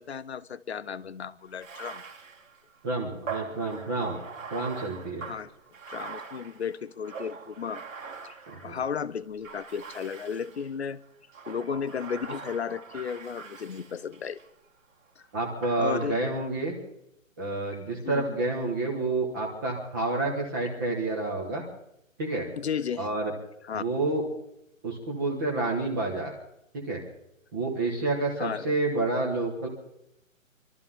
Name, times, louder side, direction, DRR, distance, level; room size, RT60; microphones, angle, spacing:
voice 1, 0.0-2.0 5.2-5.5 5.9-7.8 8.2-11.0 11.5-14.4 15.8-16.3 18.0-18.4 22.6-23.1 23.7-23.8 28.4-28.7, left 7 dB, 50° left, 16 dB, 0.8 m, -34 dB
Bathtub (filling or washing), 1.5-8.9 9.4-10.7 11.3-14.5 15.6-16.6, right 5 dB, 70° right, 2.4 m, -42 dB
voice 2, 2.8-4.2 4.5-5.3 8.5-8.8 15.3-16.7 17.4-21.6 22.2-22.5 23.0-23.3 23.7-24.2 24.8-26.3 26.8-27.0 27.5-29.7, right 2 dB, 15° right, -1 dB, 1.3 m, -29 dB
25.5 x 13.0 x 3.7 m, 0.79 s
hypercardioid pair, 170°, 41 cm